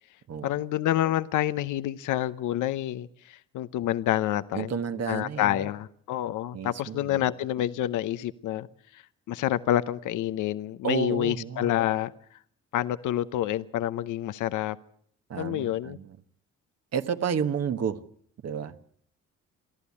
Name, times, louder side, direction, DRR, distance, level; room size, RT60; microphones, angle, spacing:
voice 1, 0.4-4.8 5.1-8.7 8.9-12.1 12.7-14.8 15.4-16.0, left 13 dB, 85° left, 0.8 m, -28 dB
voice 2, 4.5-5.7 6.5-7.2 10.8-11.7 15.3-16.2 16.9-18.0 18.4-18.7, right 7 dB, 55° right, 1.4 m, -31 dB
28.5 x 11.5 x 8.6 m
cardioid pair, 90°, 30 cm